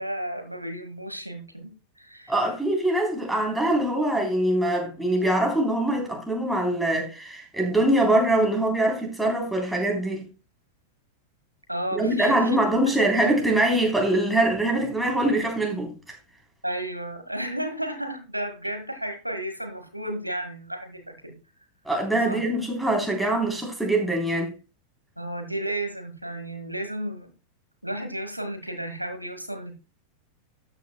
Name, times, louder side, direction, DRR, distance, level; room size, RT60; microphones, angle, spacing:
voice 1, 0.0-2.3 11.7-12.4 16.6-21.4 22.3-22.4 25.2-27.3 27.8-29.7, right 1 dB, 90° right, 1.7 m, -33 dB
voice 2, 2.3-10.3 11.9-16.2 21.9-24.5, right 1 dB, 5° right, 3.5 m, -23 dB
13.0 x 8.8 x 2.2 m
figure-of-eight pair, 90°, 0 cm